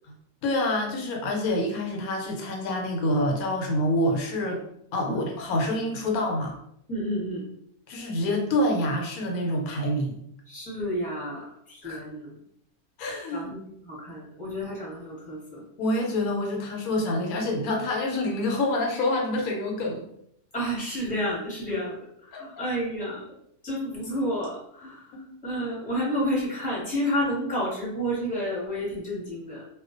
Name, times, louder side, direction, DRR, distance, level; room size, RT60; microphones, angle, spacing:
voice 1, 0.4-4.6 4.9-6.5 7.9-10.2 11.8-12.0 13.0-13.5 15.8-20.1 22.3-22.5 25.3-25.4, left 1 dB, 85° left, 1 dB, 1.0 m, -27 dB
voice 2, 6.9-7.4 10.5-12.3 13.3-15.6 20.5-23.3 23.6-25.1 25.4-29.6, equal, 5° left, -7 dB, 0.8 m, -30 dB
2.3 x 2.2 x 2.4 m, 0.72 s
omnidirectional pair, 1.5 m